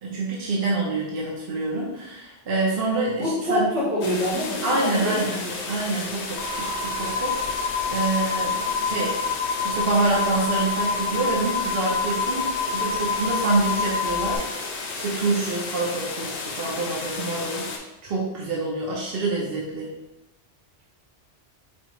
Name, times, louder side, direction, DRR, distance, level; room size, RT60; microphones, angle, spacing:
voice 1, 0.0-3.7 4.6-5.4 5.7-9.2 9.6-17.6 18.0-19.9, right 3 dB, 65° right, -4 dB, 0.9 m, -27 dB
voice 2, 3.2-5.6, equal, 80° right, -7 dB, 1.7 m, -26 dB
sound 1, 4.0-17.8, left 4 dB, 80° left, 0.9 m, -33 dB
sound 2, 6.4-14.4, left 5 dB, 55° left, 0.9 m, -27 dB
4.4 x 2.8 x 3.0 m, 0.94 s
omnidirectional pair, 1.1 m